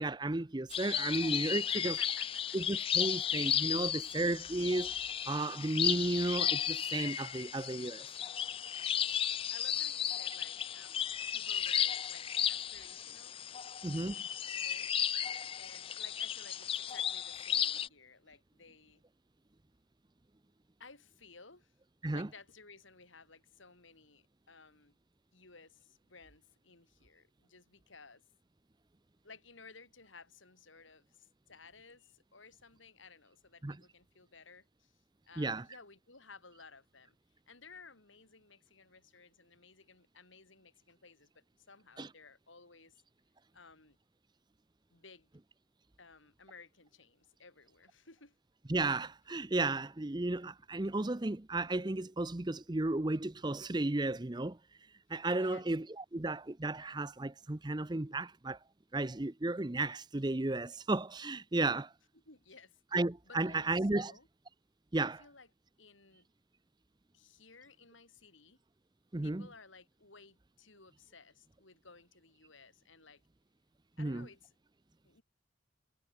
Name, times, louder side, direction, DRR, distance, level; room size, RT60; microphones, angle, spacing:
voice 1, 0.0-2.0 2.5-8.1 13.8-14.2 22.0-22.3 33.6-33.8 35.4-35.7 42.0-42.1 48.7-54.6 55.1-58.6 58.9-61.9 62.9-64.1 64.9-65.2 69.1-69.5 74.0-74.3, right 2 dB, 20° right, 0.6 m, -34 dB
sound 1, 0.7-17.9, left 9 dB, 30° left, 0.3 m, -34 dB
voice 2, 1.7-2.6 8.9-11.0 11.3-13.4 13.9-14.9 15.6-19.0 20.8-21.7 22.1-25.0 25.3-28.2 29.2-35.0 35.3-37.2 37.5-43.0 43.5-44.0 44.9-45.3 46.0-48.4 55.3-55.7 62.2-62.8 63.3-64.3 64.9-65.5 65.8-66.3 67.1-68.6 69.2-73.2 74.0-74.5 75.0-75.2, left 4 dB, 75° left, 5.0 m, -57 dB
head